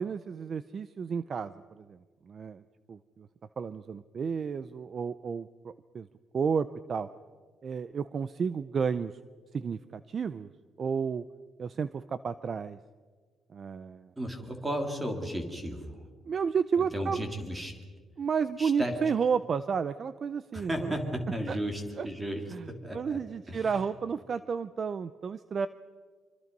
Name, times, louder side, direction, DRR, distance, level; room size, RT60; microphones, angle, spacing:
voice 1, 0.0-2.0 2.3-2.6 2.9-3.3 3.6-6.1 6.3-7.1 7.6-9.1 9.5-10.5 10.8-11.2 11.6-12.8 13.5-14.1 16.3-17.4 18.2-21.0 21.5-21.6 22.0-22.1 22.5-22.7 22.9-25.7, right 6 dB, 35° right, 14 dB, 0.6 m, -32 dB
voice 2, 14.2-16.0 16.9-17.7 18.6-18.9 20.5-23.2 23.5-23.8, equal, 10° right, 4 dB, 3.1 m, -34 dB
26.0 x 25.0 x 5.4 m, 1.6 s
cardioid pair, 155°, 0 cm